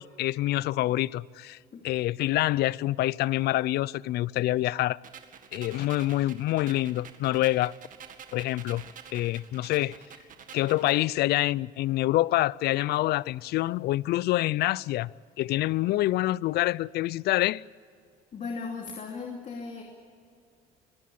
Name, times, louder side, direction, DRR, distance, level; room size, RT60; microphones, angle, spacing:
voice 1, 0.0-1.6 1.8-5.0 5.5-7.7 8.3-8.8 9.1-10.0 10.5-15.1 15.4-17.6, left 16 dB, 70° left, 0.5 m, -26 dB
sound 1, 5.0-11.0, right 8 dB, 50° right, 2.0 m, -48 dB
voice 2, 18.3-19.8, left 4 dB, 45° left, 2.8 m, -36 dB
22.5 x 17.0 x 8.6 m
cardioid pair, 110°, 17 cm